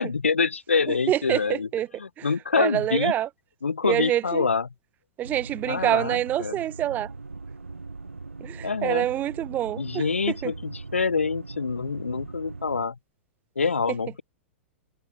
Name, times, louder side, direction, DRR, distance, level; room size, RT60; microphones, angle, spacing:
voice 1, 0.0-1.7 2.0-3.1 3.6-4.7 5.7-6.6 8.6-9.1 9.7-13.0 13.6-14.2, left 5 dB, 75° left, 0.9 m, -26 dB
voice 2, 1.1-1.9 2.2-2.3 2.5-3.3 3.8-4.5 5.2-7.1 8.4-10.0 10.4-10.5, right 12 dB, 25° right, 0.6 m, -26 dB
sound 1, 5.2-12.9, right 3 dB, 80° right, 1.5 m, -40 dB
figure-of-eight pair, 100°, 7 cm